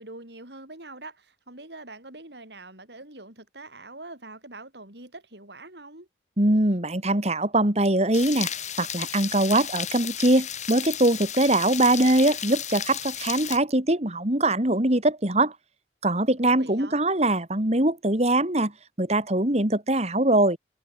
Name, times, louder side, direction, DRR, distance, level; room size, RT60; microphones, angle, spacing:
voice 1, 0.0-6.1 16.4-17.0, right 2 dB, 65° right, 6.6 m, -44 dB
voice 2, 6.4-8.5 8.8-15.5 16.0-18.7 19.0-20.6, right 1 dB, 35° right, 2.9 m, -22 dB
sound 1, 8.1-13.6, left 9 dB, 40° left, 6.2 m, -33 dB
head